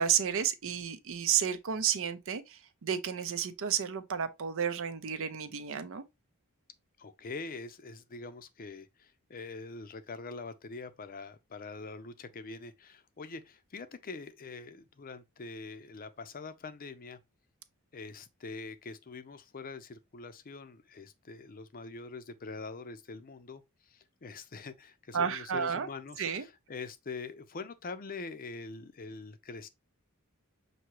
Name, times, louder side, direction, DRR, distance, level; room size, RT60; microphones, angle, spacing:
voice 1, 0.0-6.0 25.1-25.9 26.2-26.5, right 8 dB, 60° right, 0.6 m, -31 dB
voice 2, 7.0-17.2 17.9-29.7, left 4 dB, 40° left, 0.6 m, -44 dB
6.0 x 2.7 x 3.0 m
head